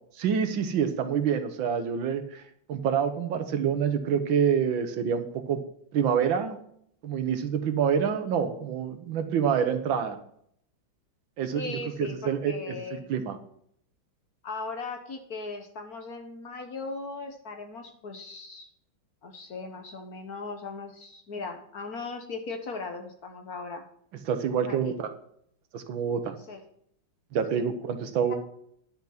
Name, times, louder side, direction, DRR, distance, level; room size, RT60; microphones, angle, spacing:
voice 1, 0.2-2.4 2.7-5.6 5.9-6.6 7.0-10.2 11.4-13.4 24.3-25.1 25.7-26.3 27.3-28.3, right 7 dB, 75° right, 8 dB, 1.7 m, -27 dB
voice 2, 11.5-13.1 14.4-18.7 19.2-23.8 24.7-25.0 26.5-26.6 27.5-27.6 28.3-28.4, left 3 dB, 50° left, 5 dB, 1.5 m, -38 dB
10.5 x 5.9 x 5.8 m, 0.68 s
omnidirectional pair, 2.2 m